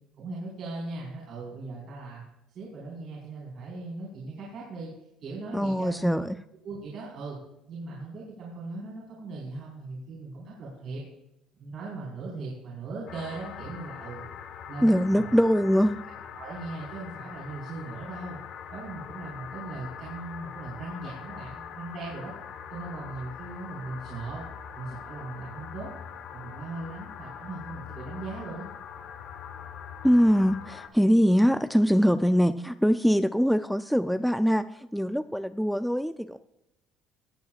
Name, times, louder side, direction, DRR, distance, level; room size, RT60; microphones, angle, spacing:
voice 1, 0.2-2.2 2.5-4.9 5.2-6.1 6.6-7.4 7.7-11.0 11.5-14.3 14.7-15.3 16.0-18.4 18.7-22.3 22.7-24.5 24.7-25.9 26.3-28.6, right 3 dB, 60° right, -6 dB, 4.5 m, -39 dB
voice 2, 5.5-6.4 14.8-16.0 30.0-36.4, equal, ahead, 10 dB, 0.4 m, -23 dB
sound 1, 13.1-30.9, left 8 dB, 65° left, 1.3 m, -42 dB
19.0 x 7.9 x 2.4 m, 0.85 s
cardioid pair, 115°, 0 cm